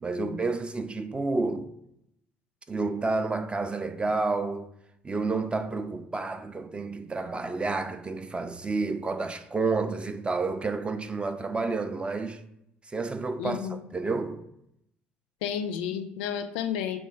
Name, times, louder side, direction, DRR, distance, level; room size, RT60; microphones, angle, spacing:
voice 1, 0.0-1.7 2.7-4.7 5.0-12.4 12.9-13.6 13.9-14.5, right 3 dB, 15° right, 0.3 m, -30 dB
voice 2, 13.4-13.8 15.4-17.0, left 8 dB, 65° left, 0.4 m, -31 dB
3.1 x 2.2 x 4.2 m
figure-of-eight pair, 60°, 6 cm